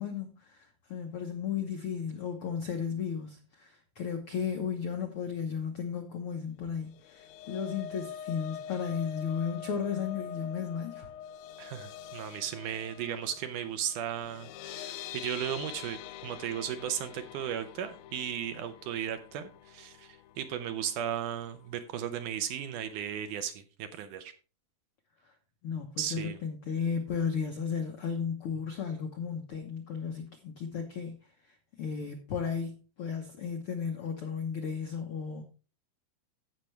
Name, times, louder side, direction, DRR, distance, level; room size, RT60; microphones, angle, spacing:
voice 1, 0.0-11.1 25.6-31.2 31.8-35.4, left 6 dB, 75° left, 3 dB, 1.2 m, -34 dB
sound 1, 6.9-21.1 21.4-21.7 22.0-22.1, left 10 dB, 90° left, 1.7 m, -45 dB
voice 2, 11.6-24.3 26.0-26.4, right 9 dB, 75° right, 8 dB, 2.1 m, -36 dB
15.5 x 5.8 x 3.2 m, 0.35 s
omnidirectional pair, 4.1 m